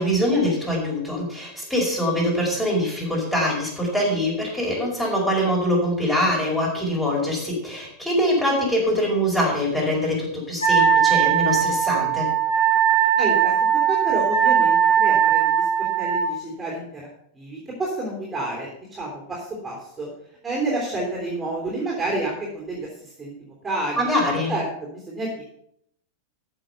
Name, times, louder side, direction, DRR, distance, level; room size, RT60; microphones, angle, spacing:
voice 1, 0.0-12.3 24.0-24.5, equal, 5° left, -3 dB, 4.9 m, -23 dB
Wind instrument woodwind instrument, 10.6-16.2, right 9 dB, 85° left, 2.6 m, -19 dB
voice 2, 12.9-13.5 13.9-17.1 17.3-20.1 20.4-23.3 23.6-24.1 24.5-25.4, right 2 dB, 15° right, -2 dB, 3.2 m, -29 dB
14.0 x 6.0 x 5.7 m, 0.72 s
figure-of-eight pair, 90°, 0 cm